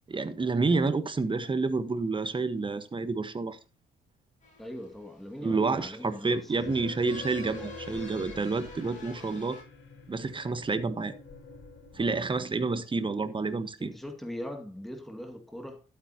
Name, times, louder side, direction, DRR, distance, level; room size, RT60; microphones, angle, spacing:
voice 1, 0.1-3.6 5.4-9.6 10.1-11.1 11.9-13.9, right 3 dB, 25° right, 1.4 m, -29 dB
sound 1, 4.4-9.6, left 3 dB, 40° left, 6.2 m, -51 dB
voice 2, 4.6-6.8 13.8-15.8, left 1 dB, ahead, 2.2 m, -41 dB
sound 2, 6.6-12.2, left 3 dB, 65° left, 4.7 m, -46 dB
12.0 x 8.7 x 2.9 m
cardioid pair, 90°, 20 cm